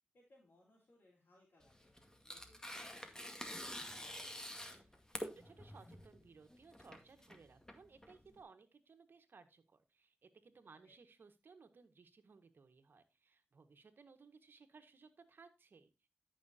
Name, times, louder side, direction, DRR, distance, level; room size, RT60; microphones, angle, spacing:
voice 1, 0.1-1.9 2.2-4.6 10.7-10.9, left 1 dB, 65° left, -5 dB, 4.0 m, -69 dB
Tearing, 1.6-8.4, left 1 dB, 15° left, 2.1 m, -48 dB
voice 2, 5.1-15.9, right 4 dB, 70° right, 8 dB, 1.6 m, -61 dB
14.0 x 6.3 x 2.8 m, 0.26 s
cardioid pair, 45°, 4 cm